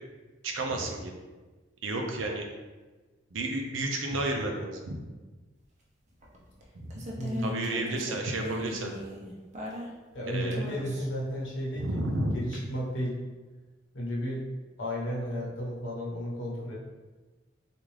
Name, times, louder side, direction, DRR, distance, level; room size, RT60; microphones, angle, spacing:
voice 1, 0.4-1.1 1.8-2.5 3.3-5.0 6.8-7.1 7.4-8.9 10.3-10.6 11.7-12.3, right 2 dB, 90° right, 2 dB, 0.5 m, -31 dB
sound 1, 6.2-10.2 10.5-11.2 12.5-12.6, equal, 40° right, 0.6 m, -39 dB
voice 2, 7.2-7.7 10.1-12.0 12.3-13.1 13.9-14.4 14.8-16.7, equal, 80° left, -5 dB, 1.0 m, -33 dB
3.5 x 2.5 x 3.2 m, 1.2 s
head